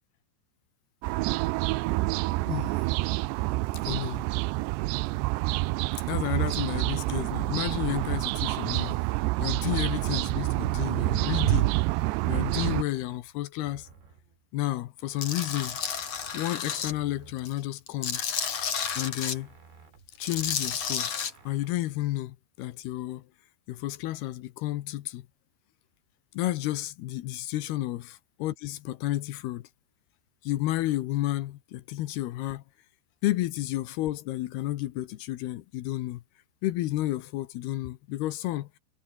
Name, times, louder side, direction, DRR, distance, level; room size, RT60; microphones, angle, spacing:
sound 1, 1.0-12.8, right 21 dB, 80° right, 2.5 m, -27 dB
voice 1, 2.5-2.9 3.9-4.3 6.1-9.0 9.4-11.8 12.2-13.9 14.5-15.8 16.3-18.3 18.9-19.5 20.2-21.1 21.5-23.2 23.7-25.3 26.3-29.6 30.4-32.6 33.2-36.2 36.6-38.8, left 16 dB, 75° left, 2.5 m, -31 dB
sound 2, 11.9-14.6 15.0-17.9 18.2-21.7, right 5 dB, 65° right, 8.9 m, -56 dB
Tools, 15.2-16.9 17.4-19.4 20.1-21.3, left 7 dB, 40° left, 2.8 m, -31 dB
omnidirectional pair, 5.5 m